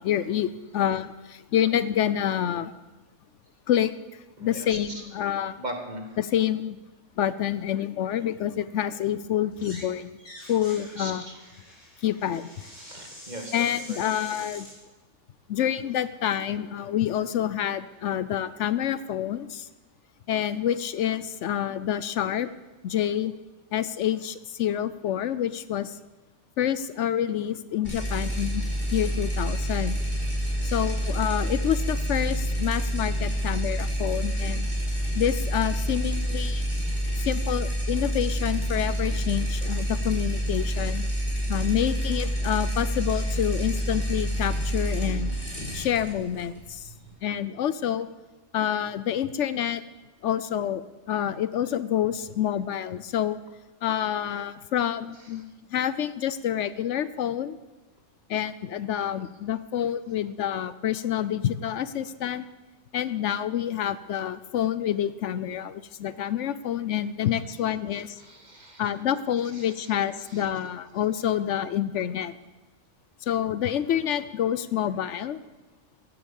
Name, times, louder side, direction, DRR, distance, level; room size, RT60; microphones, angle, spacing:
voice 1, 0.0-2.7 3.7-3.9 4.4-5.5 6.2-6.8 7.2-10.1 10.5-11.3 12.0-12.5 13.5-14.7 15.5-19.7 20.3-22.5 22.8-23.3 23.7-26.0 26.6-28.7 28.9-30.0 30.6-34.6 35.1-36.6 37.2-41.0 41.5-45.3 45.7-46.9 47.2-48.1 48.5-49.8 50.2-50.8 51.1-53.4 53.8-57.6 58.3-62.4 62.9-68.2 68.8-72.3 73.2-75.4, left 10 dB, 75° left, 15 dB, 0.9 m, -27 dB
voice 2, 4.4-5.0 5.6-6.2 11.0-11.5 12.7-14.0 55.1-55.4 67.9-68.9 69.5-70.5, right 1 dB, 35° right, 3 dB, 2.1 m, -40 dB
sound 1, 9.5-9.9 10.2-14.7, left 1 dB, 90° left, 6.0 m, -45 dB
sound 2, 27.8-47.1, equal, 50° left, 5.6 m, -28 dB
15.0 x 11.0 x 7.1 m, 1.2 s
omnidirectional pair, 1.3 m